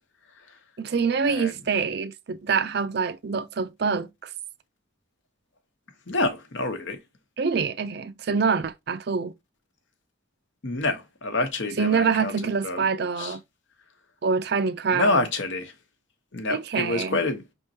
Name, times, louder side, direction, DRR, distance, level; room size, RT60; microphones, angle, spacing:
voice 1, 0.8-4.3 7.4-9.3 11.8-13.4 14.2-15.2 16.5-17.2, right 5 dB, 50° right, 0.4 m, -25 dB
voice 2, 6.1-7.0 10.6-12.3 12.6-12.9 13.2-13.4 14.9-15.7 16.3-17.5, left 2 dB, 60° left, 1.0 m, -27 dB
5.2 x 3.6 x 2.7 m
head